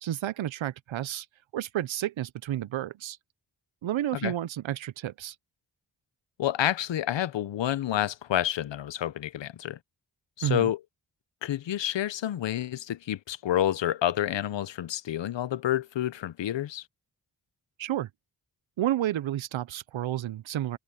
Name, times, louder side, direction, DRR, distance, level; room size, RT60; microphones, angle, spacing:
voice 1, 0.0-1.3 1.5-3.2 3.8-5.3 10.4-10.7 17.8-18.1 18.8-20.8, right 12 dB, 80° right, 0.8 m, -31 dB
voice 2, 6.4-9.8 10.4-10.8 11.4-16.8, left 12 dB, 70° left, 0.8 m, -29 dB
cardioid pair, 45°, 46 cm